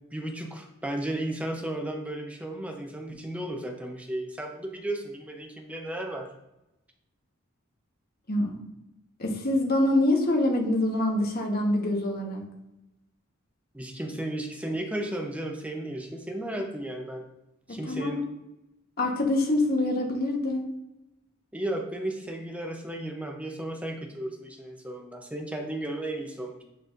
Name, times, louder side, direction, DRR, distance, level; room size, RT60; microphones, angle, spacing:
voice 1, 0.1-6.3 13.7-17.3 17.7-18.2 21.5-26.6, right 1 dB, 5° right, 3 dB, 0.6 m, -34 dB
voice 2, 8.3-8.6 9.2-12.4 17.7-18.2 19.0-20.7, left 1 dB, 45° left, 1 dB, 1.1 m, -25 dB
9.1 x 4.0 x 2.5 m, 0.94 s
head